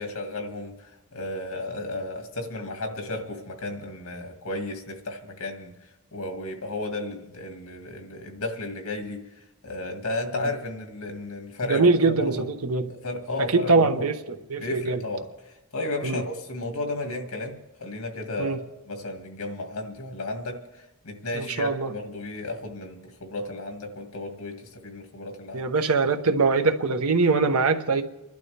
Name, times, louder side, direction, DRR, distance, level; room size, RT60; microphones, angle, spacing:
voice 1, 0.0-5.7 6.1-12.5 12.9-14.1 14.6-25.6, left 2 dB, 90° left, 4 dB, 2.0 m, -33 dB
voice 2, 11.7-12.9 13.5-14.2 14.5-15.0 16.0-16.2 18.4-18.6 21.3-21.9 25.5-28.0, right 3 dB, 85° right, 8 dB, 1.0 m, -22 dB
29.0 x 11.5 x 3.4 m, 1.0 s
head